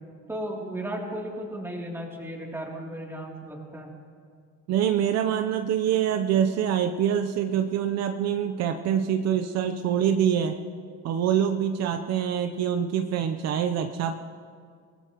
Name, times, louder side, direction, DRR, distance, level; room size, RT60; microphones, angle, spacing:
voice 1, 0.3-3.9, right 1 dB, 10° right, -2 dB, 3.0 m, -35 dB
voice 2, 4.7-10.6 11.0-14.2, right 9 dB, 60° right, 7 dB, 0.8 m, -25 dB
26.5 x 18.0 x 3.0 m, 2.1 s
cardioid pair, 125°, 30 cm